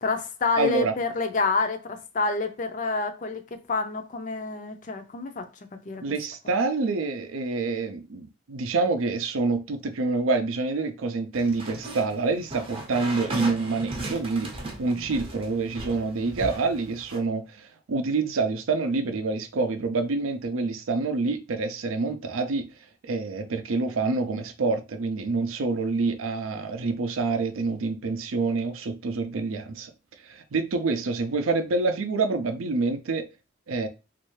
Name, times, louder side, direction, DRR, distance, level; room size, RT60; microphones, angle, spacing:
voice 1, 0.0-3.4 3.7-5.4 5.9-6.0, left 4 dB, 40° left, 0.4 m, -27 dB
voice 2, 0.6-0.9 6.0-22.7 23.0-29.9 30.3-33.3 33.7-33.9, right 3 dB, 85° right, 0.5 m, -27 dB
sound 1, 11.3-17.2, right 2 dB, 25° right, 0.6 m, -37 dB
3.1 x 2.5 x 3.1 m
head